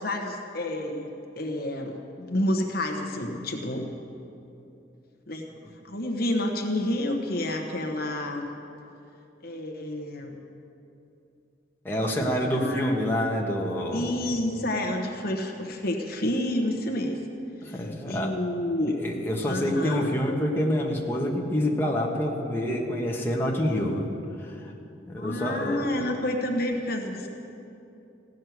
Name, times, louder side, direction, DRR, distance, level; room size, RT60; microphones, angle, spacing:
voice 1, 0.0-3.9 5.3-5.4 5.8-8.5 9.4-10.4 12.1-12.9 13.9-17.2 17.6-19.0 19.5-20.1 25.2-27.3, left 1 dB, 55° left, 2 dB, 1.2 m, -29 dB
voice 2, 11.8-14.1 17.6-18.3 19.0-24.1 24.4-24.7 25.1-25.9, equal, 10° left, -2 dB, 1.4 m, -27 dB
16.0 x 6.5 x 9.4 m, 2.8 s
head